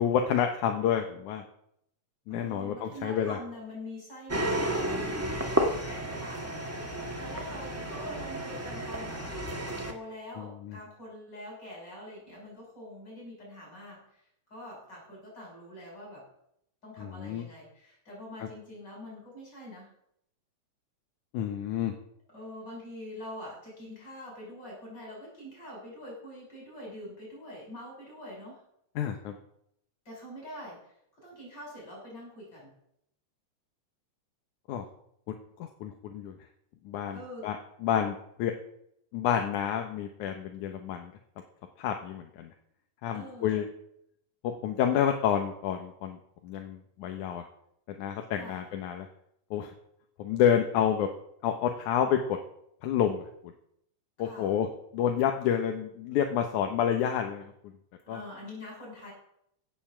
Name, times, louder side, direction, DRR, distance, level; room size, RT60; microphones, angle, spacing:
voice 1, 0.0-1.4 2.3-3.4 10.4-10.8 17.0-17.5 21.3-21.9 29.0-29.3 34.7-34.9 35.3-35.4 35.6-36.3 36.9-37.6 37.8-38.5 39.1-41.1 41.8-42.5 43.0-43.7 44.6-46.2 46.4-47.5 48.0-49.1 49.5-49.7 50.2-51.1 51.4-52.4 52.8-53.2 54.2-54.7 54.9-57.4 58.1-58.2, left 9 dB, 85° left, 4 dB, 2.5 m, -29 dB
voice 2, 2.3-5.0 5.9-9.2 9.9-14.1 14.5-16.2 16.8-19.9 22.3-28.6 30.1-30.8 31.2-32.8 37.1-37.5 43.1-43.7 48.4-48.8 54.2-54.6 58.1-59.1, left 1 dB, 35° left, -3 dB, 6.9 m, -44 dB
sound 1, 4.3-9.9, right 1 dB, 10° right, 0.7 m, -32 dB
16.5 x 7.1 x 7.1 m, 0.73 s
omnidirectional pair, 3.4 m